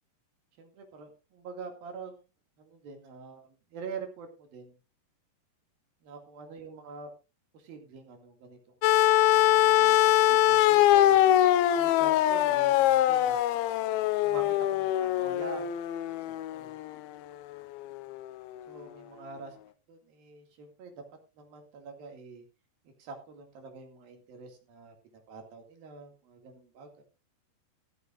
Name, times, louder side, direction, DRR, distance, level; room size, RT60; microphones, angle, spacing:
voice 1, 0.6-2.2 2.6-4.8 6.1-7.1 7.5-8.8 9.3-11.2 11.8-13.4 14.2-15.7 16.3-16.8 18.7-21.0 21.4-22.4 23.0-25.0 25.3-27.0, right 5 dB, 60° right, 4 dB, 3.9 m, -45 dB
sound 1, 8.8-17.0 18.2-18.3, left 13 dB, 80° left, 2.3 m, -23 dB
14.5 x 14.0 x 2.5 m, 0.29 s
omnidirectional pair, 4.9 m